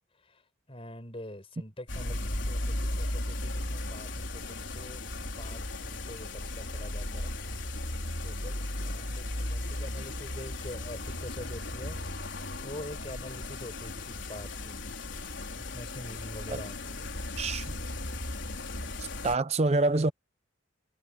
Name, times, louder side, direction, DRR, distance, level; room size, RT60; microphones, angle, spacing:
voice 1, 0.7-5.0 5.4-7.3 8.2-12.4 12.6-15.0 15.6-17.1, left 1 dB, 30° left, 4.8 m, -45 dB
sound 1, 1.9-19.3, left 1 dB, 65° left, 4.5 m, -36 dB
voice 2, 17.4-17.8 19.0-20.1, right 2 dB, 30° right, 0.5 m, -27 dB
head